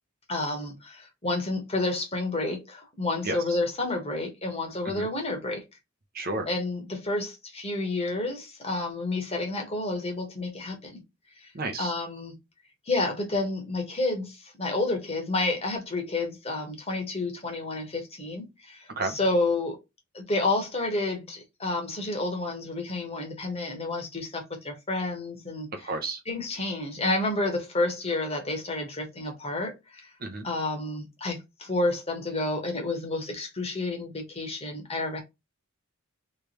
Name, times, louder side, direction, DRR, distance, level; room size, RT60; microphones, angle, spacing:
voice 1, 0.3-5.6 6.5-11.0 11.4-11.5 11.8-12.3 12.9-19.8 20.1-25.7 26.3-30.1 30.4-35.2, left 2 dB, 25° left, 1.3 m, -30 dB
voice 2, 3.2-3.6 4.8-5.1 6.1-6.5 11.5-11.9 19.0-19.2 25.7-26.2 30.2-30.5, right 2 dB, 45° right, 0.7 m, -32 dB
3.3 x 3.3 x 2.9 m
head